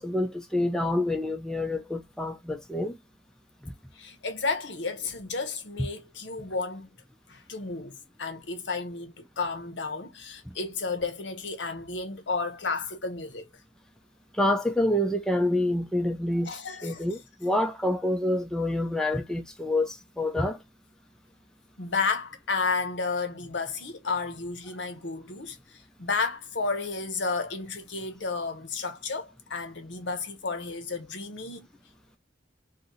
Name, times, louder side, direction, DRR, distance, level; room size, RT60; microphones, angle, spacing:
voice 1, 0.0-3.0 3.6-3.7 14.3-20.6, left 1 dB, 5° left, 0.4 m, -27 dB
voice 2, 3.9-6.9 7.3-13.5 16.5-17.0 21.8-31.7, left 4 dB, 70° left, 0.8 m, -32 dB
2.6 x 2.6 x 2.7 m
head